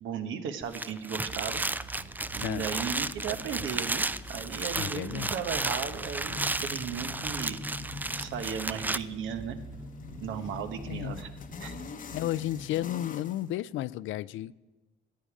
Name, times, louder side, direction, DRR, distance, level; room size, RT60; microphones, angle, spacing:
voice 1, 0.0-1.6 1.9-4.0 4.3-7.6 8.1-9.6 10.2-11.3 11.6-11.9 12.3-12.4, right 7 dB, 80° right, 8 dB, 1.0 m, -36 dB
sound 1, 0.6-9.0, right 2 dB, 10° right, 0.3 m, -33 dB
sound 2, 1.3-13.5, left 4 dB, 45° left, 0.8 m, -45 dB
sound 3, 1.3-12.8, right 3 dB, 40° right, 1.9 m, -47 dB
voice 2, 4.8-5.3 10.9-11.1 12.1-14.5, left 13 dB, 80° left, 19 dB, 0.4 m, -32 dB
13.5 x 8.8 x 4.9 m, 1.1 s
cardioid pair, 90°, 20 cm